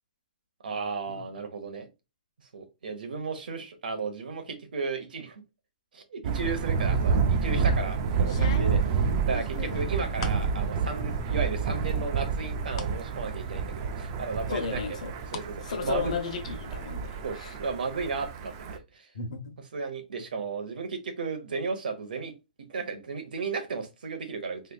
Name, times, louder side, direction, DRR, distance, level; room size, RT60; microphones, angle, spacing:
voice 1, 0.6-1.9 2.5-5.4 5.9-8.8 9.2-15.0 15.3-16.1 17.2-19.1 19.7-22.3 22.7-24.6, right 4 dB, 90° right, 1.0 m, -34 dB
Thunder, 6.2-18.8, right 5 dB, 25° right, 0.4 m, -29 dB
sound 1, 7.2-7.6 8.2-10.5 10.9-11.5 11.8-13.0 13.4-13.5 14.3-15.5 15.8-16.6, left 5 dB, 35° left, 0.5 m, -40 dB
voice 2, 8.4-8.8 14.5-15.1 15.6-17.6 19.1-19.4, left 5 dB, 50° left, 0.9 m, -34 dB
3.4 x 3.3 x 2.3 m
hypercardioid pair, 175°, 5 cm